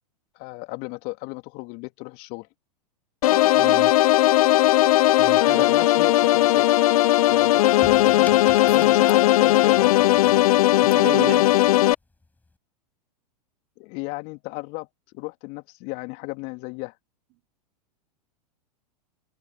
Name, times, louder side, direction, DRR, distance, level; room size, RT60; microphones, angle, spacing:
voice 1, 0.3-2.5 5.5-6.6 7.3-10.0 13.8-16.9, left 27 dB, 45° left, 3.4 m, -34 dB
sound 1, 3.2-11.9, left 15 dB, 65° left, 0.4 m, -18 dB
voice 2, 3.6-4.0 5.2-5.7 10.8-11.5, right 28 dB, 45° right, 3.5 m, -34 dB
sound 2, 7.4-11.1 12.1-12.5, left 3 dB, 10° left, 6.4 m, -44 dB
hypercardioid pair, 105°, 20 cm